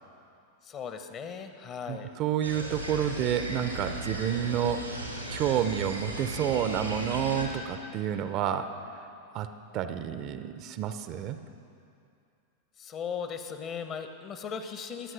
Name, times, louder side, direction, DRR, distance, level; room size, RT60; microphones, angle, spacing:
voice 1, 0.6-2.1 12.8-15.1, left 6 dB, 30° left, 8 dB, 1.1 m, -37 dB
voice 2, 1.9-4.9 5.3-9.0 9.3-9.5 9.7-11.4, right 9 dB, 40° right, 10 dB, 0.7 m, -29 dB
sound 1, 2.4-7.5, right 1 dB, 90° right, 2.4 m, -36 dB
21.5 x 7.8 x 6.3 m, 2.5 s
figure-of-eight pair, 90°, 0 cm